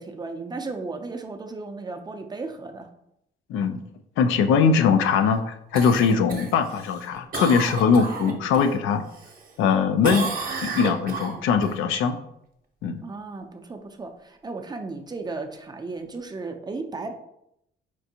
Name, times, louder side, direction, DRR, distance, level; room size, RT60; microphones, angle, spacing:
voice 1, 0.0-2.9 13.0-17.1, right 3 dB, 20° right, 5 dB, 0.4 m, -35 dB
voice 2, 4.2-9.0 9.6-10.3 10.6-12.2 12.8-13.0, left 6 dB, 90° left, 8 dB, 0.4 m, -21 dB
Cough, 5.7-8.7 9.1-9.7 10.0-11.7 16.1-16.2, right 4 dB, 45° right, 0.8 m, -32 dB
4.4 x 2.5 x 2.7 m, 0.78 s
cardioid pair, 90°, 20 cm